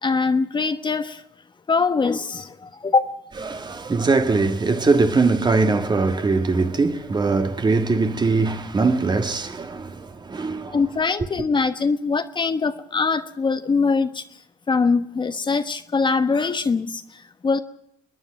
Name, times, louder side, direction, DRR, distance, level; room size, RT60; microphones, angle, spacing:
voice 1, 0.0-1.2 1.7-3.2 10.7-14.2 14.7-17.6, left 4 dB, 30° left, 1.2 m, -22 dB
voice 2, 3.5-10.8, right 3 dB, 30° right, 1.7 m, -21 dB
29.5 x 10.0 x 9.0 m
supercardioid pair, 75°, 16 cm